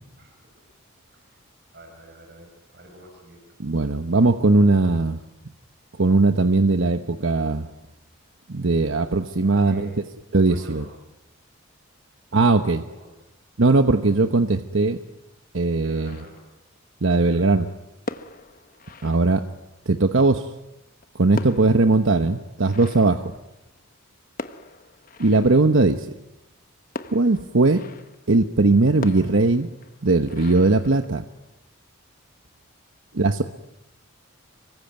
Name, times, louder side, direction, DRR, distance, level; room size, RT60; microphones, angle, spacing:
voice 1, 1.1-1.4 1.7-3.6 9.4-10.0 10.4-10.9 12.3-13.3 15.8-16.4 17.1-17.7, right 1 dB, 50° right, 3 dB, 5.3 m, -47 dB
voice 2, 3.6-5.2 6.0-7.7 8.5-9.9 10.3-10.8 12.3-12.8 13.6-15.0 15.5-16.2 17.0-17.7 19.0-19.4 19.9-20.5 21.2-23.3 25.2-26.1 27.1-27.8 28.3-29.7 30.0-31.2 33.1-33.4, right 3 dB, 65° right, 8 dB, 1.0 m, -19 dB
sound 1, 16.1-16.8 17.9-19.8 20.8-24.0 24.4-25.9 26.9-28.3 29.0-31.5, left 2 dB, 40° left, 1.2 m, -40 dB
26.0 x 24.0 x 9.4 m, 0.92 s
head